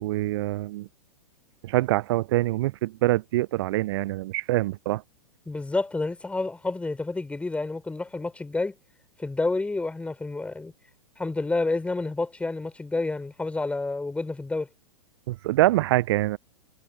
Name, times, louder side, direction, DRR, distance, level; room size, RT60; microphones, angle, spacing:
voice 1, 0.0-0.9 1.6-5.0 15.3-16.4, right 17 dB, 50° right, 0.5 m, -25 dB
voice 2, 5.5-8.7 9.2-10.7 11.2-14.7, left 3 dB, 5° left, 4.1 m, -29 dB
figure-of-eight pair, 105°, 18 cm